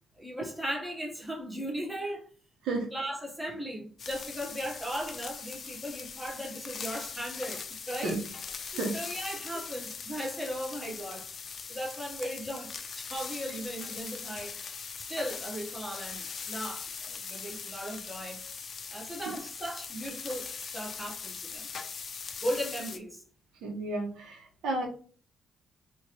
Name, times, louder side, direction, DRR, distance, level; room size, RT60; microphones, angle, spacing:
voice 1, 0.2-2.3 2.9-8.2 8.6-11.3 11.7-14.5 15.1-18.4 18.9-21.7 22.4-23.2, equal, 5° right, 1.0 m, -37 dB
sound 1, 4.0-23.0, left 5 dB, 50° left, 0.5 m, -41 dB
voice 2, 23.6-24.9, right 2 dB, 85° right, 1.0 m, -32 dB
3.0 x 2.5 x 4.3 m
cardioid pair, 90°, 0 cm